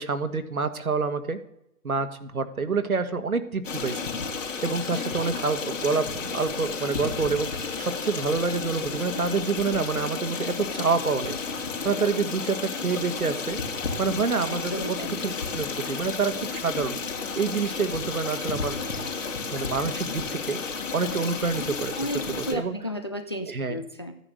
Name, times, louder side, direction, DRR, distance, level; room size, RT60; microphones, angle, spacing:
voice 1, 0.0-1.4 1.8-4.0 4.6-11.4 11.8-13.6 14.0-18.8 19.5-20.6 20.9-22.8 23.5-23.8, right 4 dB, 70° right, 9 dB, 1.7 m, -27 dB
Stream, 3.6-22.5, left 5 dB, 55° left, 2.9 m, -32 dB
voice 2, 14.4-15.1 22.0-24.1, equal, 20° left, 6 dB, 0.5 m, -33 dB
14.5 x 9.9 x 6.4 m, 0.81 s
figure-of-eight pair, 135°, 45 cm